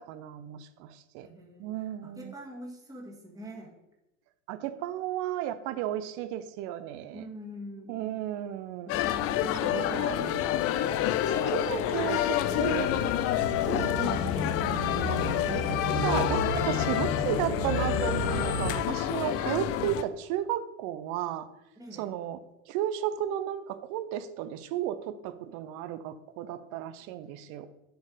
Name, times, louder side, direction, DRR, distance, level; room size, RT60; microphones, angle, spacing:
voice 1, 0.0-1.3 1.6-2.3 4.5-7.3 7.9-8.9 9.6-10.6 11.3-12.9 13.7-14.6 15.0-21.5 21.9-22.4 22.7-27.7, right 11 dB, 50° right, 12 dB, 0.8 m, -34 dB
voice 2, 1.2-3.7 7.1-8.2 8.9-10.3 11.6-11.9 21.8-22.1, equal, 10° right, -2 dB, 1.9 m, -44 dB
sound 1, 8.9-20.0, left 12 dB, 40° left, 0.5 m, -28 dB
sound 2, 12.4-18.7, left 1 dB, 85° left, 1.9 m, -32 dB
7.9 x 4.3 x 5.1 m, 0.93 s
hypercardioid pair, 90°, 38 cm